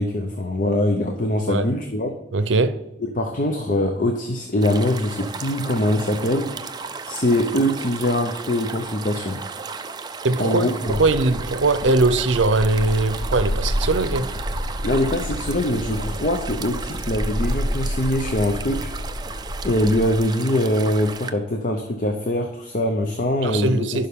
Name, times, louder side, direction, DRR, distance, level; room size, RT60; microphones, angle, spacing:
voice 1, 0.0-2.1 3.1-6.5 7.1-9.4 10.4-11.0 14.8-18.9 19.6-24.1, left 1 dB, 40° left, 0.7 m, -23 dB
voice 2, 2.3-2.8 10.2-10.6 10.9-14.3 23.4-24.1, right 2 dB, 75° right, 0.6 m, -20 dB
sound 1, 4.6-21.3, right 5 dB, 20° right, 0.4 m, -35 dB
sound 2, 10.9-20.2, equal, 80° left, 0.7 m, -29 dB
11.0 x 5.4 x 3.6 m
head